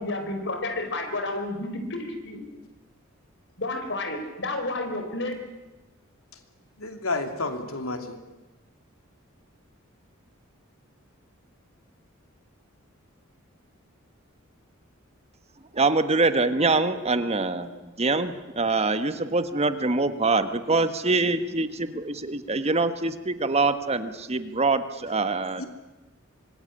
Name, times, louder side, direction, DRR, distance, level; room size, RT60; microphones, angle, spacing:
voice 1, 0.0-2.4 3.6-5.3, left 2 dB, 60° left, 6 dB, 4.5 m, -31 dB
voice 2, 6.8-8.2 25.6-25.7, left 3 dB, 90° left, 7 dB, 2.9 m, -30 dB
voice 3, 15.7-25.6, right 3 dB, 30° right, 10 dB, 1.4 m, -24 dB
25.5 x 21.0 x 10.0 m, 1.1 s
head